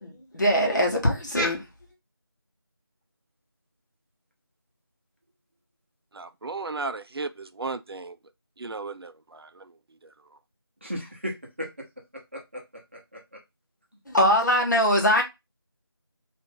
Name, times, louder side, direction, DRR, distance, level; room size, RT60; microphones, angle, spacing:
voice 1, 0.0-1.6 14.1-15.2, equal, 50° left, 1.0 m, -22 dB
voice 2, 6.1-8.2 8.6-10.1, right 3 dB, 75° right, 0.4 m, -35 dB
voice 3, 10.8-13.4, equal, 30° right, 0.7 m, -37 dB
2.5 x 2.4 x 3.5 m
figure-of-eight pair, 175°, 13 cm